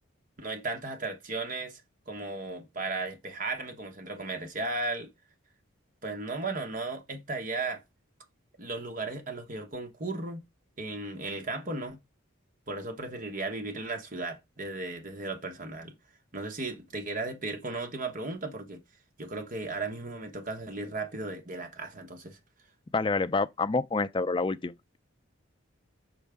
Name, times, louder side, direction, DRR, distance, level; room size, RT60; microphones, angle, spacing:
voice 1, 0.4-5.1 6.0-7.8 8.6-10.5 10.8-12.0 12.7-15.9 16.3-18.8 19.2-22.4, right 3 dB, 40° right, 1.0 m, -35 dB
voice 2, 22.9-24.7, left 3 dB, 25° left, 0.3 m, -27 dB
6.2 x 4.6 x 3.5 m
head